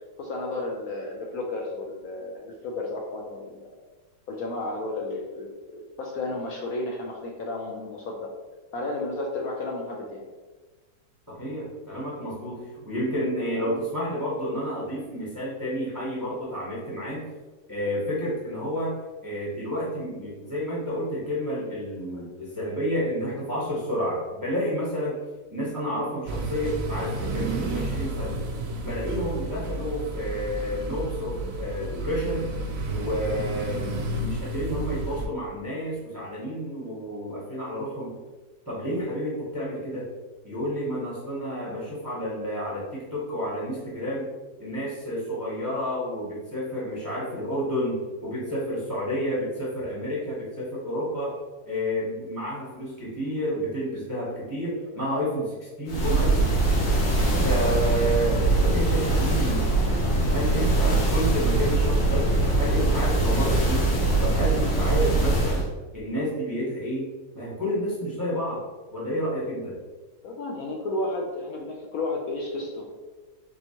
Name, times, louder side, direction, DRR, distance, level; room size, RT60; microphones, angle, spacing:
voice 1, 0.2-3.7 4.3-8.3 8.7-10.3 70.2-72.9, left 2 dB, 70° left, -1 dB, 0.8 m, -32 dB
voice 2, 11.3-17.2 17.7-19.0 19.2-25.2 25.5-28.4 28.8-32.5 32.9-38.2 38.7-40.1 40.4-44.3 44.6-51.3 51.7-56.4 57.4-59.7 60.3-62.3 62.6-63.8 64.2-65.6 65.9-67.1 67.3-68.6 68.9-69.8, equal, 20° right, -7 dB, 0.6 m, -30 dB
sound 1, 26.3-35.3, right 2 dB, 70° right, 0.8 m, -31 dB
sound 2, 55.9-65.7, right 2 dB, 85° left, 1.8 m, -22 dB
4.3 x 3.4 x 2.8 m, 1.3 s
omnidirectional pair, 2.0 m